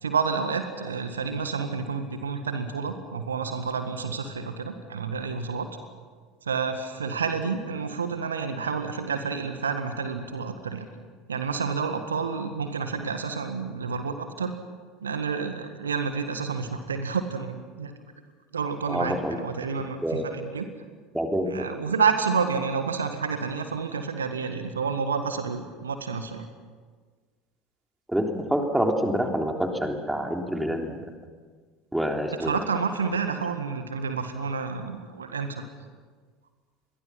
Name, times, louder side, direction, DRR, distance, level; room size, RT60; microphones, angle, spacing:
voice 1, 0.0-5.7 6.4-10.9 11.3-14.5 15.0-17.9 18.5-20.7 21.4-26.5 32.4-35.6, right 5 dB, 75° right, 7 dB, 1.8 m, -29 dB
voice 2, 18.9-19.4 20.0-20.2 21.1-21.6 28.1-31.0 31.9-32.5, equal, 5° right, 2 dB, 3.4 m, -27 dB
29.5 x 22.5 x 5.9 m, 1.5 s
figure-of-eight pair, 70°, 0 cm